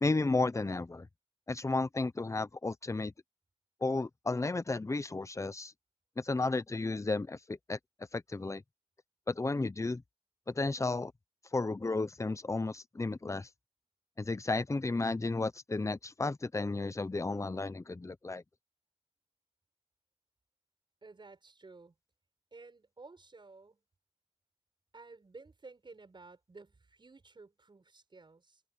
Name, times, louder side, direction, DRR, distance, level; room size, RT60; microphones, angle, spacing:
voice 1, 0.0-1.1 1.5-3.1 3.8-5.7 6.2-7.8 8.1-8.6 9.3-10.0 10.5-11.1 11.5-13.5 14.2-18.4, left 3 dB, 30° left, 0.9 m, -33 dB
voice 2, 21.0-21.9 22.5-23.8 24.9-28.6, right 3 dB, 50° right, 7.6 m, -54 dB
cardioid pair, 50°, 10 cm